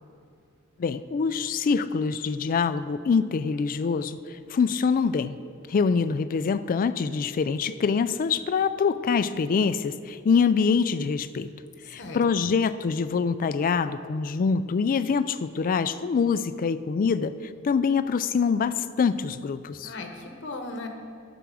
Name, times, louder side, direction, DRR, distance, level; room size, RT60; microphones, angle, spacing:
voice 1, 0.8-4.2 4.5-5.4 5.7-11.5 11.9-17.3 17.6-19.9, left 5 dB, 40° left, 13 dB, 0.3 m, -25 dB
voice 2, 11.8-12.6 19.8-20.9, left 2 dB, 55° left, 4 dB, 1.1 m, -38 dB
10.0 x 5.9 x 6.3 m, 2.3 s
head